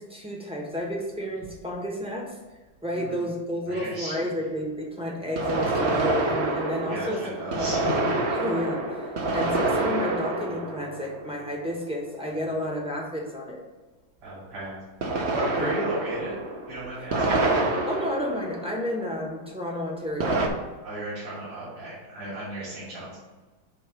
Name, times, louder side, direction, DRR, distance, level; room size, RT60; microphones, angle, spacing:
voice 1, 0.0-2.4 2.8-7.2 7.5-7.6 8.3-13.6 15.6-15.7 17.9-20.4, equal, 5° right, -2 dB, 0.7 m, -31 dB
sound 1, 1.4-1.5 5.4-11.9 15.0-19.2 20.2-20.5, right 2 dB, 60° right, 0.7 m, -27 dB
voice 2, 2.9-3.3 3.7-4.2 6.9-7.9 14.2-14.8 15.3-16.4 16.7-17.4 20.8-23.2, right 1 dB, 75° right, -9 dB, 3.4 m, -34 dB
8.7 x 3.0 x 6.0 m, 1.3 s
omnidirectional pair, 2.3 m